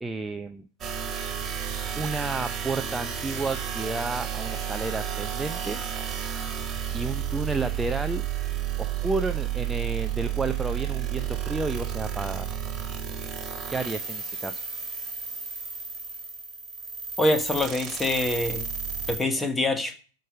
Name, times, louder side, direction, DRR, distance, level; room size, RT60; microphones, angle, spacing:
voice 1, 0.0-0.6 2.0-5.8 6.9-8.2 8.8-12.6 13.7-14.6, right 3 dB, 10° right, 7 dB, 0.6 m, -31 dB
sound 1, 0.8-19.2, right 8 dB, 25° right, 2.2 m, -32 dB
voice 2, 17.2-18.6 19.1-19.9, left 2 dB, 10° left, 8 dB, 1.5 m, -25 dB
12.0 x 5.4 x 6.6 m, 0.39 s
figure-of-eight pair, 90°, 0 cm